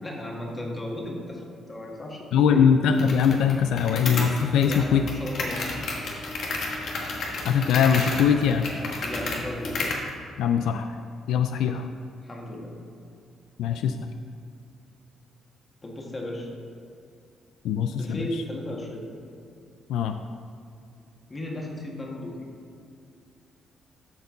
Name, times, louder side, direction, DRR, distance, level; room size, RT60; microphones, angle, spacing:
voice 1, 0.0-2.7 4.6-5.8 9.0-9.9 11.7-11.8 12.2-12.7 15.8-16.5 18.0-19.1 21.3-22.4, left 1 dB, 25° left, -1 dB, 1.7 m, -35 dB
voice 2, 2.3-5.0 7.4-8.7 10.4-10.9 11.3-11.9 13.6-14.0 17.6-18.2 19.9-20.2, left 7 dB, 85° left, 7 dB, 0.3 m, -21 dB
sound 1, 3.0-10.1, left 3 dB, 65° left, 1.4 m, -32 dB
13.0 x 4.5 x 3.9 m, 2.5 s
cardioid pair, 90°, 0 cm